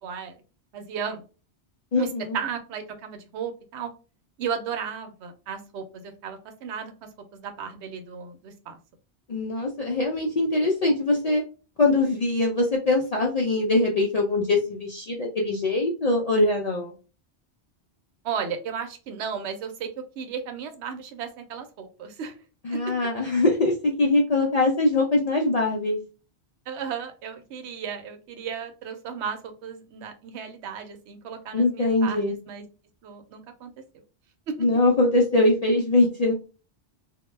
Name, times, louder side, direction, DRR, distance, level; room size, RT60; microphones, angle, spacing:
voice 1, 0.0-0.3 0.7-1.2 2.0-2.1 2.3-3.9 4.4-6.9 7.3-8.8 18.2-19.9 20.2-22.3 22.7-22.8 26.7-32.6 33.0-33.7 34.5-34.6, right 7 dB, 80° right, 7 dB, 0.9 m, -34 dB
voice 2, 1.9-2.4 9.3-11.4 11.8-16.9 22.6-26.0 31.5-32.3 34.6-36.3, left 2 dB, 60° left, -1 dB, 0.4 m, -22 dB
2.1 x 2.1 x 3.1 m, 0.34 s
omnidirectional pair, 1.1 m